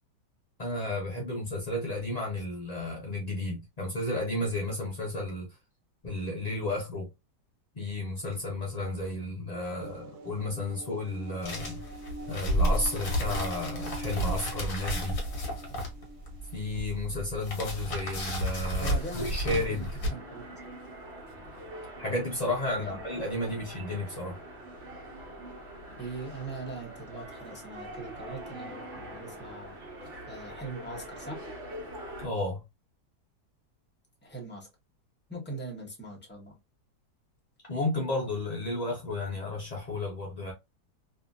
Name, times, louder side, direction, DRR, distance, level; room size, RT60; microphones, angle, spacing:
voice 1, 0.6-5.5 6.0-7.1 7.7-11.8 12.3-15.2 16.5-19.9 22.0-24.4 32.2-32.6 37.7-40.5, left 2 dB, 80° left, 0.3 m, -32 dB
sound 1, 9.8-17.7, right 1 dB, 70° right, 1.1 m, -46 dB
sound 2, 11.4-20.1, equal, 40° left, 0.9 m, -32 dB
sound 3, 18.7-32.3, right 1 dB, 50° right, 1.1 m, -44 dB
voice 2, 18.8-20.6 22.8-23.0 26.0-29.7 30.3-31.4 34.2-34.7 35.3-36.6, right 2 dB, 10° left, 0.6 m, -41 dB
2.7 x 2.6 x 2.4 m
omnidirectional pair, 1.8 m